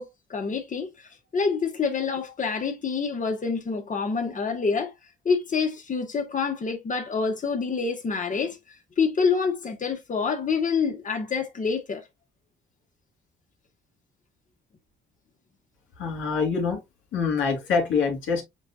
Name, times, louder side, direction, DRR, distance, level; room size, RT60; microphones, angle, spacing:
voice 1, 0.0-4.9 5.2-8.6 9.0-12.0, left 5 dB, 40° left, 1.6 m, -27 dB
voice 2, 16.0-16.8 17.1-18.4, left 5 dB, 75° left, 2.6 m, -25 dB
8.0 x 2.7 x 2.4 m
cardioid pair, 90°, 20 cm